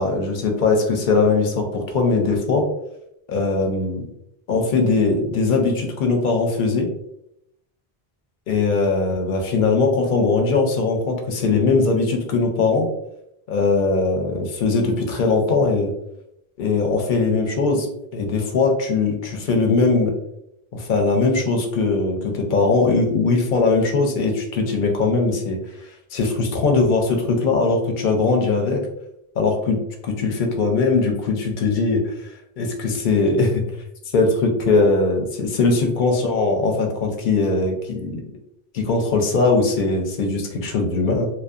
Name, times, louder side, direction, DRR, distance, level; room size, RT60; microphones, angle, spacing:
voice 1, 0.0-2.6 3.3-4.1 4.5-6.9 8.5-12.9 13.5-15.9 16.6-17.9 18.1-20.1 20.7-25.6 26.1-28.8 29.4-32.1 32.6-33.6 34.1-38.2 38.7-41.3, left 3 dB, 60° left, 3 dB, 0.6 m, -20 dB
2.6 x 2.2 x 2.4 m, 0.80 s
omnidirectional pair, 1.0 m